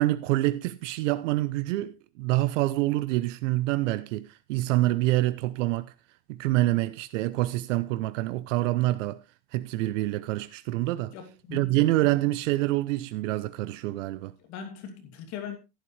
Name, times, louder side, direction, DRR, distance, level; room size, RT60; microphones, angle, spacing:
voice 1, 0.0-5.9 6.3-9.2 9.5-11.1 11.5-14.3, right 17 dB, 85° right, 0.7 m, -26 dB
voice 2, 11.1-11.9 14.5-15.6, left 7 dB, 45° left, 2.9 m, -40 dB
11.5 x 11.5 x 3.2 m
supercardioid pair, 165°, 36 cm